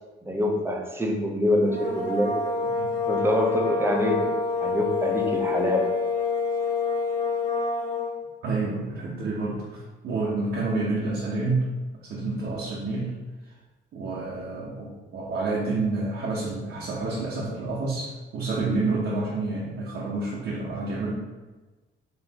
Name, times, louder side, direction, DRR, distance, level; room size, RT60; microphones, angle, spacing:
voice 1, 0.2-2.4 3.1-4.3 4.6-5.9, left 1 dB, 10° right, 1 dB, 0.6 m, -25 dB
sound 1, 1.6-8.2, left 4 dB, 45° left, 0.9 m, -27 dB
voice 2, 8.4-11.7 12.0-13.1 13.9-21.1, right 3 dB, 70° right, -6 dB, 0.8 m, -29 dB
4.1 x 2.6 x 2.9 m, 1.2 s
cardioid pair, 90°, 20 cm